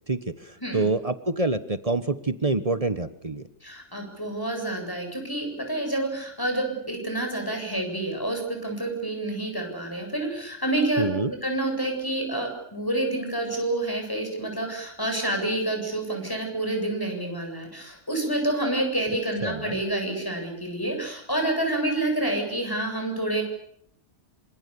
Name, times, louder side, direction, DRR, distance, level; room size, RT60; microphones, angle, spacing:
voice 1, 0.1-3.5 11.0-11.3 19.4-19.8, right 3 dB, 30° right, 11 dB, 1.3 m, -27 dB
voice 2, 3.6-23.4, right 1 dB, 15° left, 3 dB, 8.0 m, -28 dB
27.5 x 26.5 x 7.1 m, 0.70 s
omnidirectional pair, 1.2 m